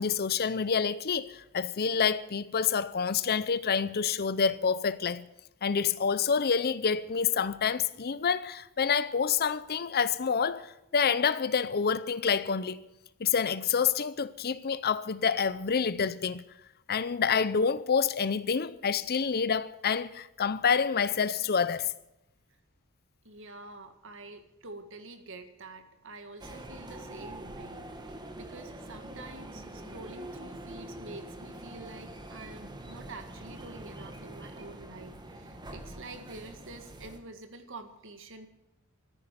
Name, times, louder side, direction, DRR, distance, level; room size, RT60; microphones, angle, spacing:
voice 1, 0.0-5.3 5.6-12.8 13.2-16.4 16.9-21.9, left 6 dB, 45° left, 0.6 m, -28 dB
voice 2, 23.2-38.5, right 2 dB, 60° right, 1.9 m, -47 dB
sound 1, 26.4-37.2, right 1 dB, 20° right, 1.5 m, -44 dB
14.0 x 10.0 x 9.2 m
head